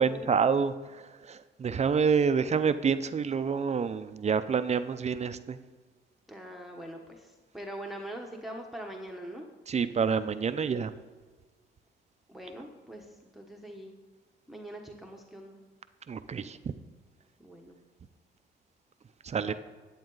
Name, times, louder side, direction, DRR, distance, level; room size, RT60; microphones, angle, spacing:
voice 1, 0.0-5.6 9.7-10.9 16.1-16.6 19.2-19.5, right 6 dB, 35° right, 11 dB, 0.5 m, -28 dB
voice 2, 6.3-9.5 12.3-13.9 14.5-15.6 17.4-17.8 19.5-19.6, right 1 dB, ahead, 1 dB, 1.0 m, -42 dB
10.5 x 8.5 x 3.9 m, 1.4 s
cardioid pair, 90°, 20 cm